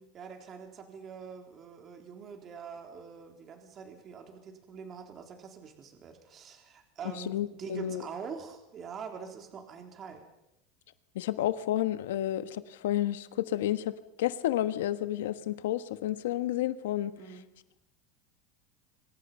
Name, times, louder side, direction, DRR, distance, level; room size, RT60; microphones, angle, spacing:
voice 1, 0.1-10.3 17.2-17.5, right 6 dB, 35° right, 4 dB, 3.7 m, -44 dB
voice 2, 7.3-8.0 11.1-13.9 14.2-17.1, left 13 dB, 85° left, 12 dB, 1.4 m, -30 dB
26.0 x 24.5 x 5.6 m, 0.85 s
supercardioid pair, 120°, 0 cm